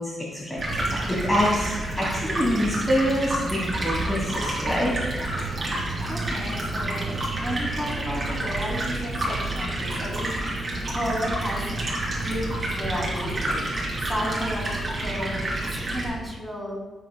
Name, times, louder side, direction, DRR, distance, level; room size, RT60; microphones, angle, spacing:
voice 1, 0.0-5.4, equal, 15° left, -6 dB, 2.1 m, -26 dB
Stream, 0.6-16.0, right 1 dB, 25° right, 3.4 m, -29 dB
voice 2, 6.1-11.7 12.1-16.8, equal, ahead, -3 dB, 2.9 m, -33 dB
16.0 x 8.5 x 2.3 m, 1.3 s
wide cardioid pair, 130°, 0 cm